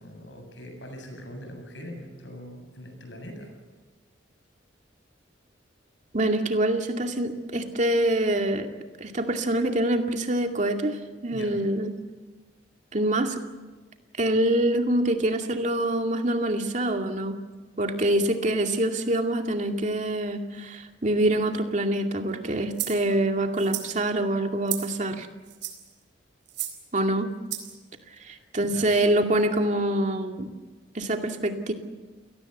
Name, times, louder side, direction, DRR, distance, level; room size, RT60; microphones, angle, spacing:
voice 1, 0.0-3.5 11.3-11.6 28.3-28.9, equal, 75° left, 4 dB, 7.5 m, -42 dB
voice 2, 6.1-8.7 9.0-12.0 12.9-13.4 14.2-17.4 17.8-25.3 26.9-27.3 28.2-30.5 30.9-31.7, right 1 dB, 40° right, 4 dB, 2.3 m, -25 dB
sound 1, 22.7-23.0 23.6-23.9 24.7-25.0 25.5-25.9 26.5-26.8 27.5-27.7, right 12 dB, 75° right, 4.1 m, -33 dB
29.5 x 18.5 x 8.0 m, 1.3 s
head